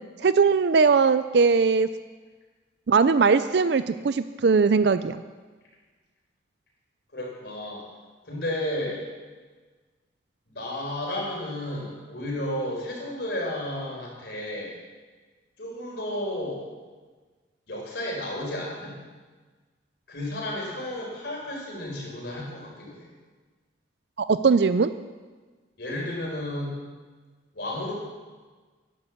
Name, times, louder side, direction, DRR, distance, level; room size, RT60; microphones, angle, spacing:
voice 1, 0.2-1.9 2.9-5.2 24.2-24.9, right 5 dB, 60° right, 12 dB, 0.4 m, -20 dB
voice 2, 7.1-7.8 8.2-9.1 10.5-14.8 15.6-16.6 17.7-19.0 20.1-23.1 25.8-26.8 27.5-27.9, left 1 dB, 60° left, -2 dB, 4.8 m, -32 dB
11.5 x 11.0 x 7.3 m, 1.4 s
head